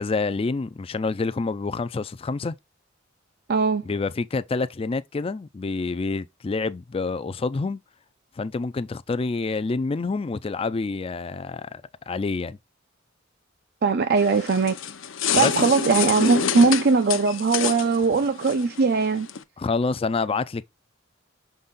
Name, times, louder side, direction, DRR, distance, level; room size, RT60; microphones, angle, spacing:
voice 1, 0.0-2.6 3.8-7.8 8.4-12.6 15.3-15.5 19.6-20.7, left 4 dB, 30° left, 0.4 m, -27 dB
voice 2, 3.5-3.8 13.8-14.8 15.3-19.3, right 4 dB, 55° right, 0.6 m, -20 dB
sound 1, 14.2-19.4, left 7 dB, 70° left, 0.7 m, -28 dB
6.5 x 4.0 x 3.7 m
head